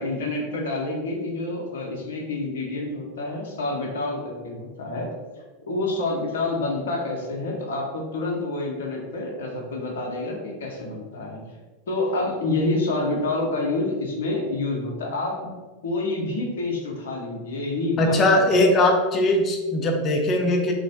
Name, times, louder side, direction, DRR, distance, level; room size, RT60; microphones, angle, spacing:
voice 1, 0.0-5.1 5.7-11.4 11.9-15.4 15.8-18.5, left 2 dB, 70° left, -1 dB, 0.6 m, -28 dB
voice 2, 18.0-20.7, left 1 dB, 35° left, 2 dB, 0.5 m, -20 dB
3.1 x 2.1 x 2.5 m, 1.3 s
figure-of-eight pair, 85°, 0 cm